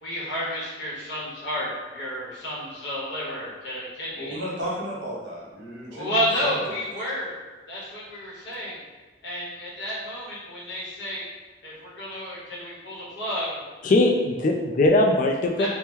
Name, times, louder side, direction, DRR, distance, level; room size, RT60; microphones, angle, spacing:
voice 1, 0.0-4.4 5.9-7.4 7.7-8.8 9.2-11.2 11.6-13.6 15.6-15.7, equal, 80° left, -6 dB, 1.0 m, -31 dB
voice 2, 4.1-6.1 6.4-6.5, equal, 80° right, -5 dB, 1.0 m, -33 dB
voice 3, 13.8-15.7, left 2 dB, 45° left, 3 dB, 0.3 m, -20 dB
2.8 x 2.1 x 3.5 m, 1.3 s
head